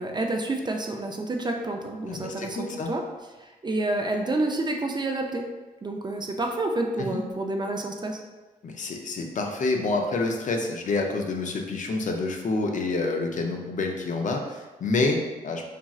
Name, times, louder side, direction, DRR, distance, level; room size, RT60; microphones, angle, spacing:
voice 1, 0.0-3.0 3.4-5.4 5.8-8.2, right 2 dB, 25° right, 2 dB, 0.4 m, -29 dB
voice 2, 2.1-2.9 7.1-7.2 8.6-15.7, left 3 dB, 50° left, 2 dB, 0.4 m, -28 dB
3.0 x 2.5 x 2.3 m, 1.2 s
cardioid pair, 60°, 16 cm